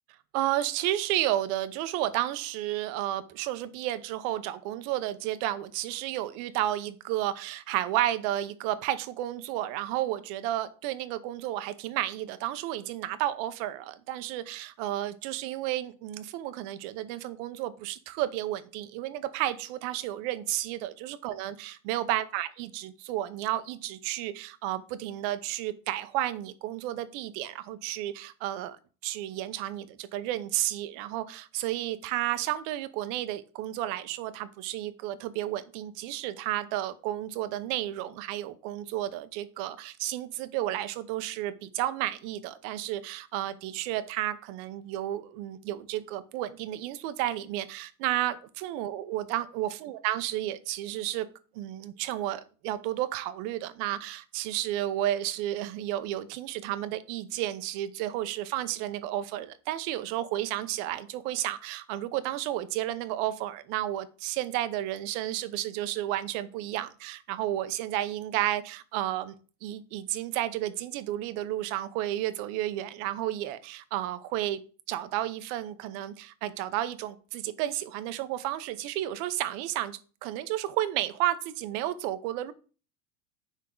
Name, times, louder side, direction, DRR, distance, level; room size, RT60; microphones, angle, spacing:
voice 1, 0.3-28.8 29.0-51.3 51.5-69.3 69.6-74.6 74.9-82.5, right 13 dB, 55° right, 0.8 m, -32 dB
9.8 x 3.7 x 3.8 m
supercardioid pair, 140°, 48 cm